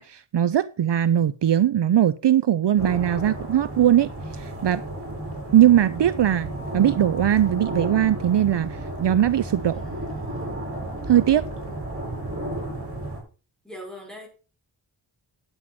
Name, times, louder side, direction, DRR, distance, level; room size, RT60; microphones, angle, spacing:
voice 1, 0.0-4.8 5.5-9.7 11.1-11.5, right 11 dB, 60° right, 15 dB, 0.6 m, -20 dB
sound 1, 2.8-13.2, right 1 dB, 25° right, 5.8 m, -33 dB
voice 2, 9.6-10.6 13.6-14.3, left 1 dB, ahead, 0 dB, 5.8 m, -43 dB
9.9 x 7.9 x 5.8 m, 0.34 s
wide cardioid pair, 85°, 49 cm